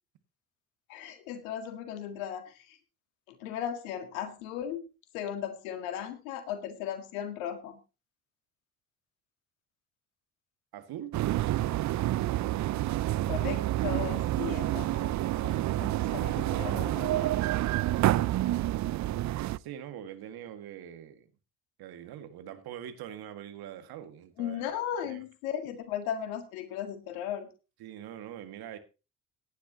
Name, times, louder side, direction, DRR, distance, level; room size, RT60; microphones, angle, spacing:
voice 1, 0.9-2.8 3.3-4.9 5.1-7.8 13.3-17.4 24.4-27.5, left 9 dB, 75° left, 9 dB, 2.0 m, -37 dB
voice 2, 10.7-11.2 19.6-21.3 21.8-24.6 25.0-25.2 27.8-28.8, right 10 dB, 60° right, 9 dB, 2.0 m, -43 dB
sound 1, 11.1-19.6, right 15 dB, 45° right, 0.6 m, -28 dB
17.0 x 10.5 x 2.9 m, 0.29 s
hypercardioid pair, 55°, 41 cm